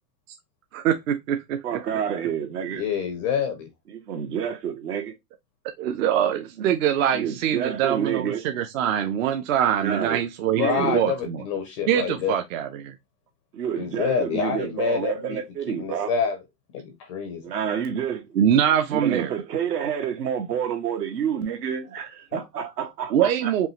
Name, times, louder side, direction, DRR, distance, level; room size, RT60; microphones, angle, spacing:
voice 1, 0.7-1.6 5.8-11.4 11.9-12.9 18.3-19.3 23.1-23.7, right 9 dB, 55° right, 0.7 m, -23 dB
voice 2, 1.6-2.8 3.9-5.1 7.1-8.4 9.8-10.2 10.5-11.0 13.5-16.1 17.4-18.3 18.9-23.5, right 8 dB, 75° right, 1.6 m, -28 dB
voice 3, 2.7-3.7 10.5-12.4 13.8-15.4 15.7-16.4 16.7-17.4, left 6 dB, 25° left, 0.4 m, -27 dB
5.3 x 2.5 x 3.0 m
supercardioid pair, 145°, 48 cm